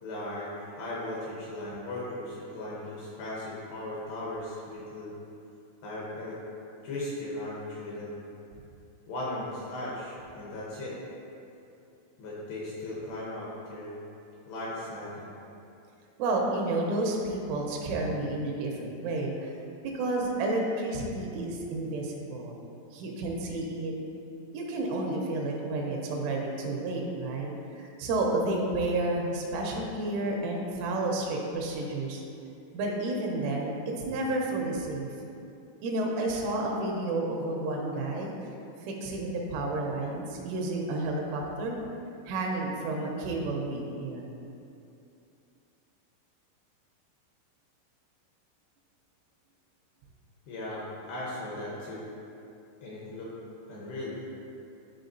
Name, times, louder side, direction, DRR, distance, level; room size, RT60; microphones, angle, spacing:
voice 1, 0.0-5.1 5.8-6.4 6.8-8.2 9.1-11.0 12.2-14.0 14.5-15.3 50.5-52.1 52.8-53.3 53.7-54.2, left 1 dB, 80° left, -6 dB, 2.6 m, -37 dB
voice 2, 16.2-19.5 19.9-22.6 22.9-23.9 24.5-32.2 32.7-35.1 35.8-38.3 38.8-41.8 42.3-44.3, right 2 dB, 80° right, 0 dB, 3.1 m, -31 dB
12.5 x 4.7 x 2.6 m, 2.7 s
omnidirectional pair, 5.7 m